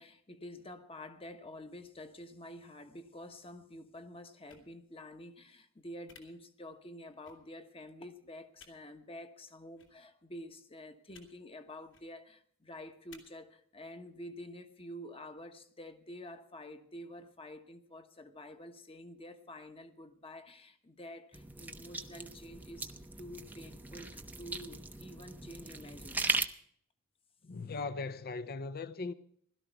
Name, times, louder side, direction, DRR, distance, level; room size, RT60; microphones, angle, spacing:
voice 1, 0.0-26.3, left 1 dB, 25° left, 1.1 m, -49 dB
sound 1, 4.5-4.6 6.1-6.2 7.2-7.3 8.5-8.7 9.8-9.9 11.1-11.3 11.8-12.0 13.1-13.2, left 5 dB, 60° left, 2.8 m, -56 dB
sound 2, 21.3-26.5, right 3 dB, 10° right, 0.6 m, -39 dB
voice 2, 27.4-29.1, left 3 dB, 45° left, 0.6 m, -39 dB
16.5 x 12.5 x 4.5 m
head